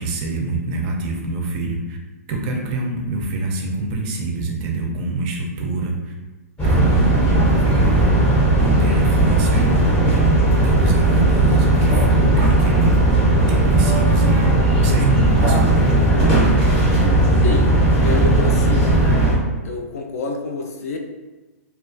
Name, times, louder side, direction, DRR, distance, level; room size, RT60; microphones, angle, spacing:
voice 1, 0.0-2.0 2.3-6.1 6.6-8.2 8.6-10.2 10.6-13.0 13.5-16.0, right 3 dB, 30° right, 0 dB, 0.4 m, -25 dB
sound 1, 6.6-19.3, right 1 dB, 10° left, 0.6 m, -16 dB
voice 2, 18.0-19.0 19.6-21.0, left 3 dB, 65° left, 2 dB, 0.5 m, -27 dB
2.3 x 2.3 x 2.5 m, 1.2 s
hypercardioid pair, 155°, 9 cm